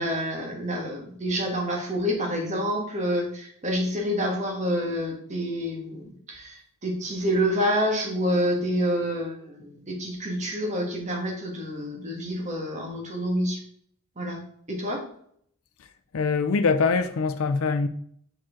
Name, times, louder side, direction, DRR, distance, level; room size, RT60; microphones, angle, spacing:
voice 1, 0.0-13.6 14.2-14.4 14.7-15.0, equal, 30° right, 1.5 m, -28 dB
voice 2, 16.1-17.9, left 4 dB, 70° left, 0.5 m, -23 dB
5.8 x 5.1 x 3.7 m
head